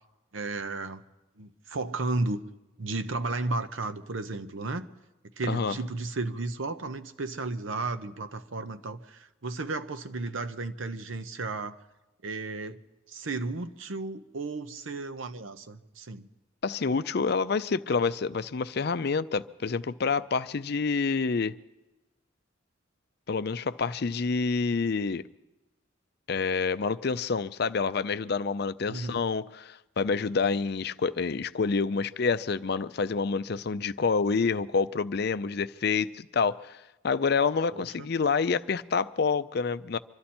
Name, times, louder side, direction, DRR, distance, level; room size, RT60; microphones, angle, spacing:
voice 1, 0.3-1.0 1.4-2.4 2.8-4.9 5.4-11.8 12.2-12.8 13.1-16.3 28.9-29.2 37.7-38.1, right 3 dB, 80° right, 10 dB, 0.9 m, -33 dB
voice 2, 16.6-21.6 23.3-25.3 26.3-36.8 37.0-40.0, left 5 dB, 55° left, 13 dB, 0.5 m, -28 dB
25.0 x 12.5 x 4.4 m, 1.0 s
head